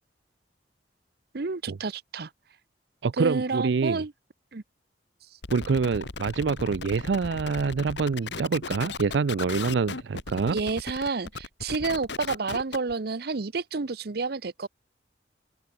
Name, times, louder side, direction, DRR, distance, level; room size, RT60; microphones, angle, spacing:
voice 1, 1.3-2.3 3.2-4.1 4.5-4.6 10.5-14.7, right 4 dB, 65° right, 0.8 m, -30 dB
voice 2, 3.0-4.0 5.5-10.6, right 5 dB, 85° right, 0.5 m, -26 dB
sound 1, 5.4-12.9, left 4 dB, 85° left, 1.6 m, -37 dB
open air
head